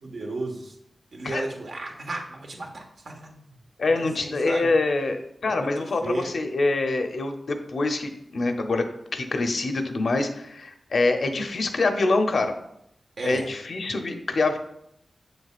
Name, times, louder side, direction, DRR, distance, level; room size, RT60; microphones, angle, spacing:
voice 1, 0.0-0.7 1.1-3.4 3.9-4.7 5.4-6.3 13.2-13.5, right 2 dB, 70° right, 0 dB, 1.5 m, -34 dB
voice 2, 3.8-8.9 9.1-12.5 13.2-14.6, left 3 dB, 65° left, 5 dB, 0.7 m, -25 dB
7.0 x 6.5 x 2.5 m, 0.75 s
wide cardioid pair, 85°, 0 cm